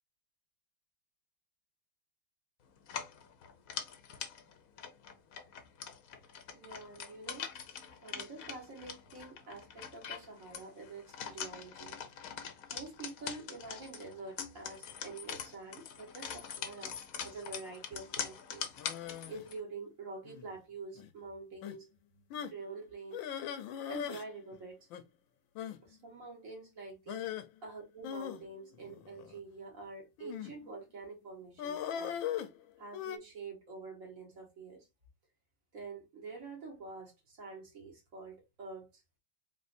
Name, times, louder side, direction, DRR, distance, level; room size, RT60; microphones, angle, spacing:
sound 1, 2.8-19.6, left 7 dB, 60° left, 0.9 m, -44 dB
voice 1, 6.5-7.5 8.0-12.0 12.7-18.7 19.3-21.9 22.5-23.2 23.9-24.9 25.8-27.2 27.6-32.2 32.8-34.9 35.7-38.9, right 3 dB, 45° right, 1.8 m, -47 dB
sound 2, 18.8-19.5 20.2-20.6 20.9-21.1 21.6-21.8 22.3-22.6 23.1-24.3 24.5-24.6 24.9-25.0 25.5-25.8 27.1-27.4 28.0-29.4 30.2-30.6 31.6-33.2, left 9 dB, 90° left, 1.4 m, -39 dB
4.1 x 3.7 x 2.6 m
omnidirectional pair, 2.0 m